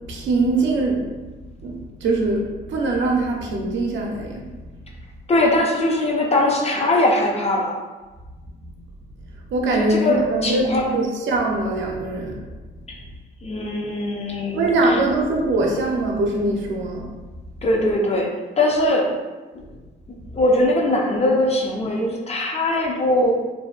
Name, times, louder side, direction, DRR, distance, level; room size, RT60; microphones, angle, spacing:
voice 1, 0.1-1.1 1.6-4.5 8.6-8.7 9.5-12.4 14.5-17.1, right 2 dB, 70° right, 0 dB, 0.5 m, -22 dB
voice 2, 5.3-7.8 9.6-10.8 12.9-13.0 13.4-15.0 17.6-18.3 18.6-19.2 19.5-19.6 20.1-23.3, left 1 dB, 30° left, 0 dB, 0.5 m, -21 dB
2.6 x 2.1 x 2.3 m, 1.2 s
cardioid pair, 90°, 20 cm